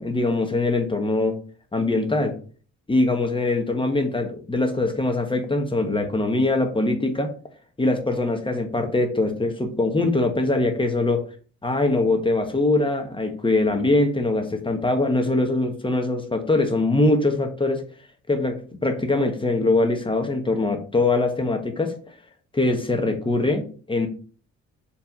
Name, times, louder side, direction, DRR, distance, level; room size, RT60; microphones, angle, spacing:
voice 1, 0.0-1.4 1.7-2.4 2.9-7.3 7.8-11.2 11.6-17.8 18.3-22.0 22.5-24.1, left 2 dB, 15° left, 6 dB, 1.3 m, -22 dB
5.8 x 3.4 x 5.2 m, 0.40 s
cardioid pair, 90°, 30 cm